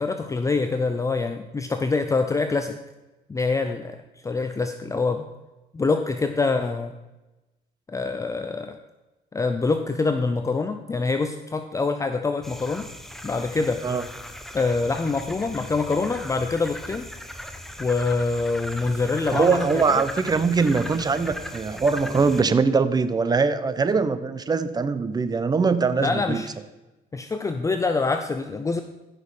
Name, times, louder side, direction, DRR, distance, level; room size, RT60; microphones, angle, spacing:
voice 1, 0.0-2.8 3.3-5.3 5.7-6.9 7.9-8.8 9.3-12.9 13.2-13.8 14.5-17.1 17.8-20.0 26.0-26.5 27.1-28.8, left 3 dB, 20° left, 7 dB, 0.6 m, -25 dB
sound 1, 12.4-22.4, equal, ahead, 1.0 m, -38 dB
voice 2, 19.3-26.4, right 4 dB, 25° right, 12 dB, 0.8 m, -22 dB
15.0 x 6.4 x 5.0 m, 1.0 s
cardioid pair, 110°, 17 cm